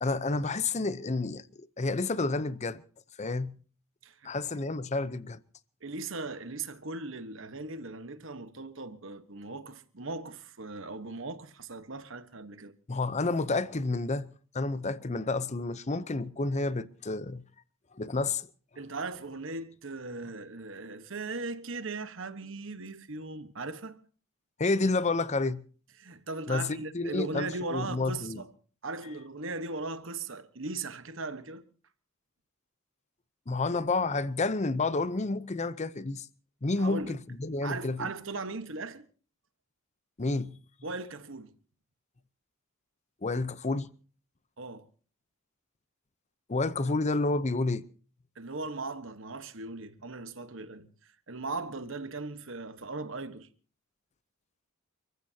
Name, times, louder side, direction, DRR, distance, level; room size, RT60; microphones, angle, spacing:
voice 1, 0.0-2.8 3.2-3.5 4.2-5.4 12.9-14.3 14.5-17.4 18.0-18.5 24.6-25.6 26.5-28.4 33.5-36.3 36.6-38.1 40.2-40.6 43.2-43.9 46.5-47.8, left 3 dB, 35° left, 0.7 m, -30 dB
voice 2, 4.0-4.7 5.8-12.7 18.8-24.0 26.0-28.5 28.8-31.6 36.8-37.1 37.6-39.0 40.8-41.5 44.6-44.9 48.4-50.9 51.3-53.5, right 3 dB, 65° right, 1.3 m, -38 dB
30.0 x 15.0 x 2.8 m
head